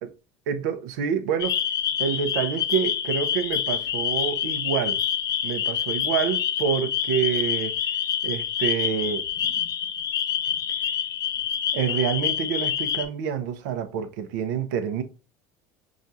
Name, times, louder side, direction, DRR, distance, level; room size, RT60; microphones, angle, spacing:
voice 1, 0.5-1.6 2.0-5.0 5.4-7.7 8.2-9.3 11.7-15.0, right 7 dB, 85° right, 0.7 m, -27 dB
sound 1, 1.4-13.0, left 9 dB, 40° left, 0.5 m, -27 dB
6.2 x 2.4 x 2.7 m
supercardioid pair, 125°, 10 cm